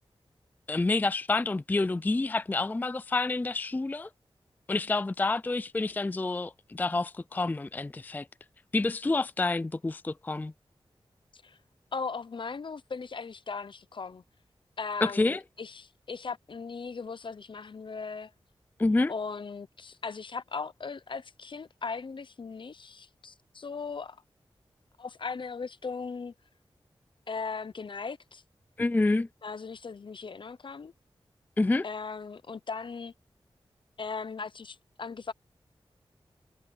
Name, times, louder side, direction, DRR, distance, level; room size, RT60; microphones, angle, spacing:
voice 1, 0.7-4.1 4.7-8.3 8.7-10.5 15.0-15.4 18.8-19.1 28.8-29.3 31.6-31.8, left 3 dB, 20° left, 0.3 m, -28 dB
voice 2, 11.9-14.2 14.8-18.3 19.1-24.2 25.0-26.3 27.3-28.4 29.4-30.9 31.8-33.1 34.0-35.3, left 5 dB, 60° left, 0.7 m, -38 dB
wide cardioid pair, 90°, 10 cm